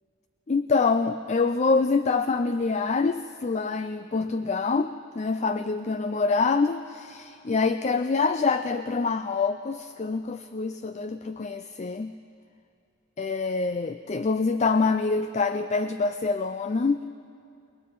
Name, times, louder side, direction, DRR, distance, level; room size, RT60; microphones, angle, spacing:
voice 1, 0.5-12.1 13.2-17.0, left 4 dB, 35° left, 10 dB, 0.4 m, -26 dB
28.5 x 20.5 x 4.7 m, 2.4 s
head